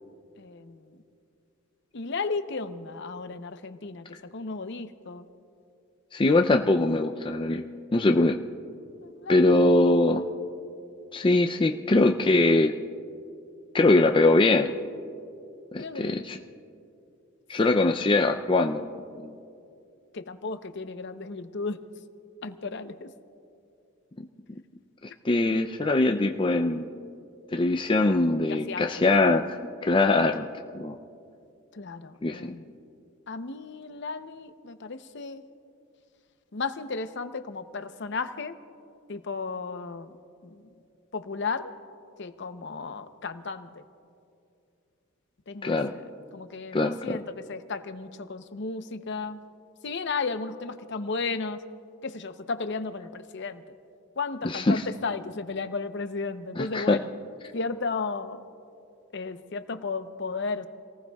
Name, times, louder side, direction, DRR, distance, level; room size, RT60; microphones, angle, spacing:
voice 1, 0.4-1.0 1.9-5.3 9.0-9.7 15.8-16.2 17.7-17.9 20.1-21.8 22.4-23.1 25.3-25.4 28.5-29.1 31.7-32.7 33.3-35.4 36.5-38.6 39.1-40.2 40.4-40.6 41.1-41.7 42.2-43.8 45.5-49.4 49.8-51.6 52.0-53.6 54.2-57.1 57.5-58.4 59.1-60.7, left 4 dB, 55° left, 10 dB, 0.7 m, -34 dB
voice 2, 6.1-7.6 7.9-8.4 9.3-10.2 11.1-12.7 13.7-14.7 15.7-16.4 17.5-18.9 19.2-19.3 25.2-26.9 27.5-30.5 30.8-31.0 32.2-32.5 45.6-45.9 46.7-47.2 54.4-54.8 56.6-57.0, left 2 dB, 25° left, 4 dB, 0.4 m, -22 dB
29.0 x 19.0 x 2.3 m, 2.6 s
head